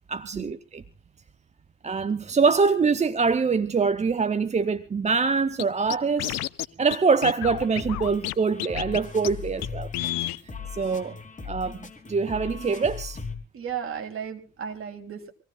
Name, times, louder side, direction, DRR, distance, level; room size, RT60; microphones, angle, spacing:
voice 1, 0.1-0.8 1.8-6.4 6.8-9.9 10.7-13.2, right 5 dB, 25° right, 0.8 m, -24 dB
Scratching (performance technique), 5.6-5.7 5.9-6.7 6.9-7.0 7.2-8.3 8.6-9.0 9.2-9.3 9.6-9.7 9.9-10.4, left 15 dB, 60° left, 0.7 m, -30 dB
sound 1, 7.5-13.4, left 5 dB, 25° left, 3.2 m, -39 dB
voice 2, 13.5-15.3, right 8 dB, 45° right, 3.4 m, -35 dB
25.0 x 17.5 x 2.4 m
hypercardioid pair, 55°, 30 cm